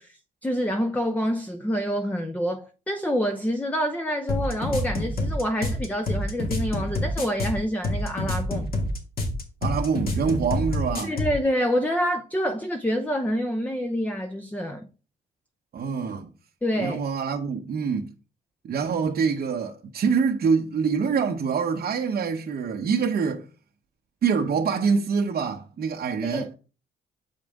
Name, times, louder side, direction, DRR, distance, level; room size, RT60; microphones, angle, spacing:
voice 1, 0.0-8.7 11.0-14.9 16.6-17.0 26.2-26.4, equal, 10° left, 0.7 m, -27 dB
sound 1, 4.3-11.4, left 1 dB, 50° left, 2.3 m, -27 dB
voice 2, 9.6-11.1 15.7-16.3 16.8-18.1 18.6-23.5 24.2-26.5, right 5 dB, 50° right, 0.9 m, -25 dB
7.3 x 5.3 x 3.6 m
cardioid pair, 90°, 20 cm